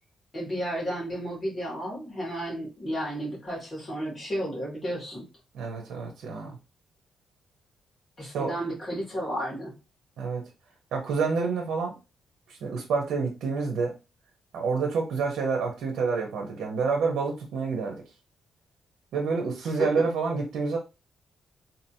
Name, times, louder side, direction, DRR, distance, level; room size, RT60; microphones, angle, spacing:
voice 1, 0.3-5.2 8.2-9.7 19.7-19.8, equal, 30° left, -5 dB, 2.3 m, -33 dB
voice 2, 5.5-6.6 8.2-8.5 10.2-10.5 10.9-11.9 12.5-14.0 14.5-18.0 19.1-20.8, right 4 dB, 85° right, 1 dB, 0.9 m, -28 dB
4.0 x 2.9 x 2.8 m, 0.28 s
cardioid pair, 135°, 0 cm